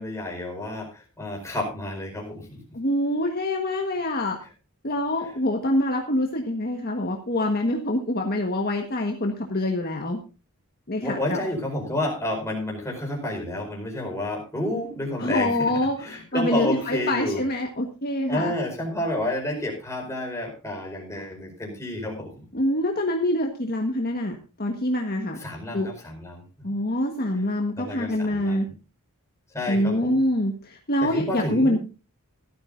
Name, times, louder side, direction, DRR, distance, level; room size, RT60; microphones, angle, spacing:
voice 1, 0.0-2.6 11.0-15.7 16.0-17.4 18.3-22.4 25.4-26.4 27.8-28.7 29.5-30.2 31.0-31.8, left 1 dB, 15° left, 0 dB, 4.7 m, -30 dB
voice 2, 2.7-4.4 4.8-10.2 10.9-11.4 15.2-18.5 22.5-25.4 25.7-25.9 26.6-28.7 29.7-31.8, left 1 dB, 45° left, 2 dB, 1.5 m, -25 dB
17.0 x 12.5 x 2.6 m, 0.32 s
head